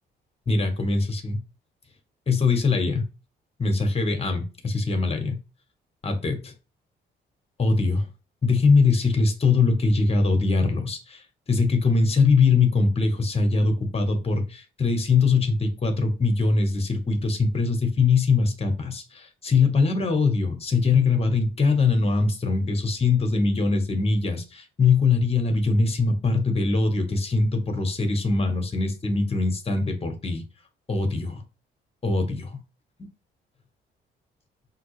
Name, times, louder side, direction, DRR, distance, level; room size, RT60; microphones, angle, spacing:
voice 1, 0.5-1.4 2.3-3.1 3.6-5.4 6.0-6.5 7.6-8.1 8.4-11.2 11.5-30.4 30.9-31.4 32.0-32.5, left 4 dB, 30° left, 1.2 m, -22 dB
5.6 x 2.8 x 3.1 m
cardioid pair, 90°, 20 cm